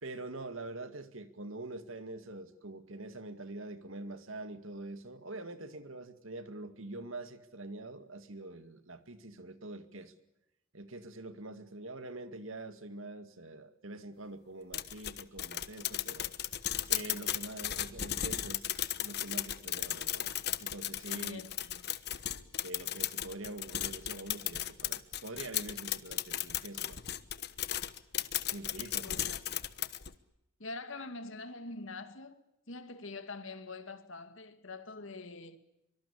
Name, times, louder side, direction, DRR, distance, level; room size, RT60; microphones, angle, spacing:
voice 1, 0.0-10.1 10.7-16.3 16.8-20.3 20.6-21.4 22.6-27.0 28.5-29.3, right 2 dB, 75° right, 2.2 m, -45 dB
sound 1, 14.7-30.1, left 12 dB, 50° left, 1.1 m, -36 dB
voice 2, 21.1-21.8 29.0-29.4 30.6-35.6, left 3 dB, 70° left, 2.2 m, -45 dB
24.5 x 24.5 x 8.6 m
head